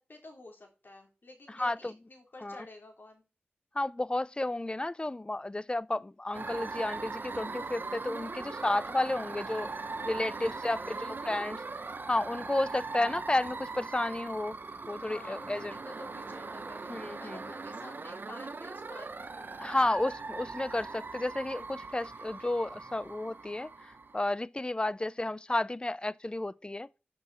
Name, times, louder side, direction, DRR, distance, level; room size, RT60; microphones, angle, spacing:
voice 1, 0.0-3.2 10.2-11.4 15.0-19.8, left 2 dB, 55° left, 3.7 m, -51 dB
voice 2, 1.6-1.9 2.4-2.6 3.8-9.7 10.0-11.6 12.1-14.6 14.9-15.7 16.9-17.4 19.6-23.7 24.1-26.9, left 2 dB, 25° left, 0.4 m, -32 dB
sound 1, 6.3-24.3, right 3 dB, 55° right, 0.9 m, -40 dB
13.5 x 7.0 x 4.3 m
cardioid pair, 50°, 4 cm